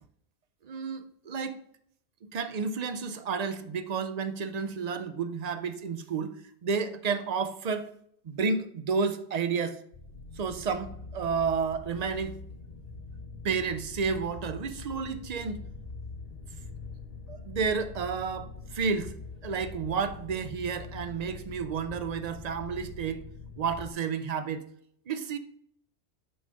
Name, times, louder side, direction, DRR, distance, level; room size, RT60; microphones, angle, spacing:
voice 1, 0.6-1.6 2.3-6.4 6.6-7.9 8.2-9.8 10.4-12.4 13.4-15.6 17.3-19.1 19.4-23.2 23.6-24.6 25.1-25.4, right 5 dB, 50° right, 0.5 m, -31 dB
sound 1, 9.9-23.9, left 3 dB, 60° left, 1.1 m, -43 dB
6.6 x 4.0 x 5.1 m
omnidirectional pair, 1.2 m